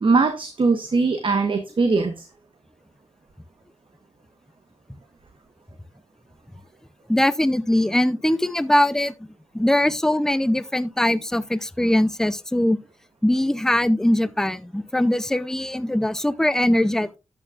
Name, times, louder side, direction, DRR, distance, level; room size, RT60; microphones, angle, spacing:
voice 1, 0.0-2.3, right 4 dB, 45° right, 1.1 m, -21 dB
voice 2, 7.1-9.3 9.5-12.8 13.2-17.2, left 1 dB, 5° left, 0.5 m, -21 dB
13.0 x 8.6 x 2.4 m
wide cardioid pair, 125°, 12 cm